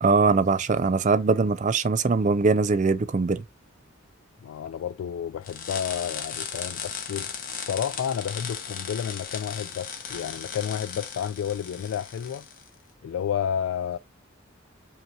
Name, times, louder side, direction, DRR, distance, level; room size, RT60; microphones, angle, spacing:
voice 1, 0.0-3.4, right 4 dB, 40° right, 0.4 m, -22 dB
voice 2, 4.4-7.3 7.6-12.5 13.0-14.0, left 8 dB, 80° left, 0.3 m, -31 dB
sound 1, 5.4-12.7, left 7 dB, 45° left, 1.0 m, -37 dB
5.3 x 2.9 x 2.3 m
head